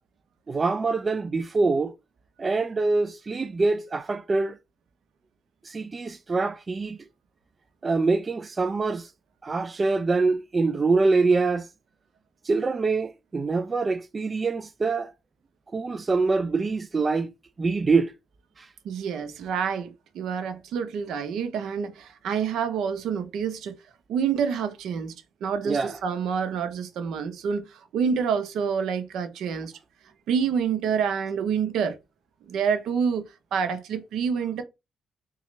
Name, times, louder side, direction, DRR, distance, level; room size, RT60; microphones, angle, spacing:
voice 1, 0.5-1.9 2.4-4.6 5.6-7.0 7.8-9.1 9.4-11.7 12.4-15.1 15.7-17.3 17.6-18.1 18.6-18.7 25.6-26.0, right 3 dB, 30° right, 0.3 m, -24 dB
voice 2, 18.8-23.8 24.1-25.1 25.4-29.7 30.3-32.0 32.5-33.2 33.5-34.6, right 7 dB, 80° right, 0.6 m, -27 dB
3.9 x 2.3 x 3.1 m
cardioid pair, 90°, 0 cm